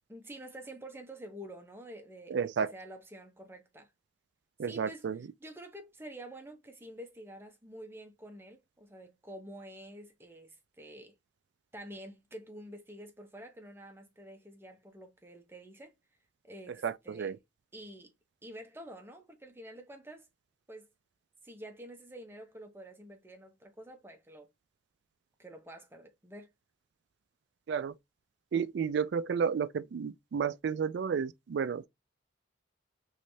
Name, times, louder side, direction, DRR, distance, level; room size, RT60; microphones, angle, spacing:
voice 1, 0.1-3.9 4.6-5.1 5.4-11.1 11.7-15.9 16.4-17.3 17.7-18.1 18.4-20.3 20.7-20.9 21.4-24.5 25.4-26.5, right 1 dB, 10° right, 0.7 m, -48 dB
voice 2, 2.3-2.7 4.6-5.2 16.8-17.4 27.7-27.9 28.5-31.9, right 6 dB, 60° right, 0.3 m, -32 dB
3.1 x 3.1 x 2.6 m
head